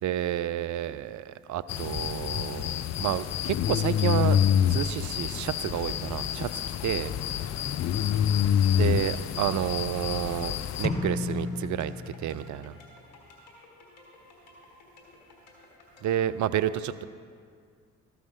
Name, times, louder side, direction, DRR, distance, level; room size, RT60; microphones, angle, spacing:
voice 1, 0.0-2.7 3.0-4.4 4.7-6.5 6.8-7.1 8.7-11.9 12.2-12.7 16.0-17.0, right 11 dB, 50° right, 15 dB, 0.5 m, -30 dB
sound 1, 1.7-10.9, left 9 dB, 45° left, 0.4 m, -27 dB
sound 2, 6.2-16.2, left 2 dB, 80° left, 1.6 m, -55 dB
sound 3, 10.8-12.7, left 3 dB, 15° left, 1.2 m, -33 dB
13.5 x 5.6 x 3.7 m, 2.1 s
hypercardioid pair, 45°, 38 cm